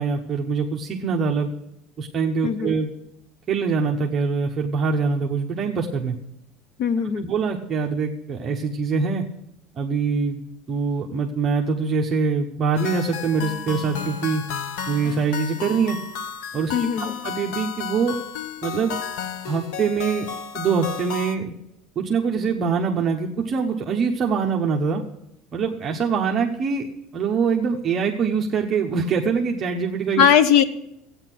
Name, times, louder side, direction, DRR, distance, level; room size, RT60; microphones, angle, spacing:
voice 1, 0.0-1.5 2.0-2.9 3.5-6.1 7.2-9.3 9.8-10.4 10.7-14.4 14.9-16.0 16.5-18.2 18.6-19.0 19.5-20.3 20.5-21.5 22.0-25.0 25.5-26.9 27.1-30.3, right 5 dB, 25° right, 0 dB, 0.8 m, -24 dB
voice 2, 2.4-2.7 6.8-7.3 16.7-17.1 30.2-30.6, left 8 dB, 50° left, 14 dB, 0.8 m, -19 dB
sound 1, 12.8-21.4, left 7 dB, 75° left, 1.0 m, -33 dB
14.0 x 8.9 x 6.0 m, 0.79 s
cardioid pair, 175°, 0 cm